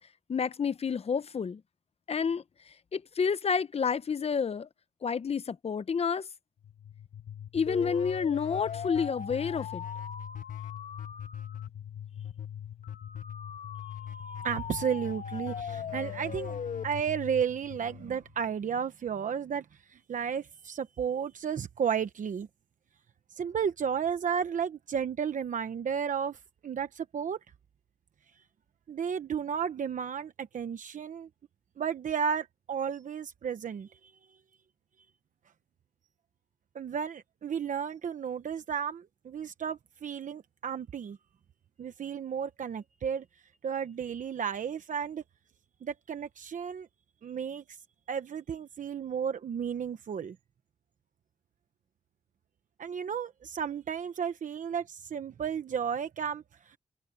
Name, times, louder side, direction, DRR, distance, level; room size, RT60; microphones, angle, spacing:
voice 1, 0.3-1.6 2.1-2.4 2.9-4.7 5.0-6.3 7.5-9.8, left 6 dB, 50° left, 0.7 m, -29 dB
sound 1, 6.6-18.5, left 8 dB, 80° left, 1.5 m, -39 dB
voice 2, 14.4-16.6 16.8-22.5 23.4-27.4 28.9-31.3 31.8-34.1 36.7-41.2 41.8-43.2 43.6-45.2 45.8-46.9 47.2-47.8 48.1-50.4 52.8-56.8, right 7 dB, 80° right, 1.0 m, -33 dB
wide cardioid pair, 95°, 13 cm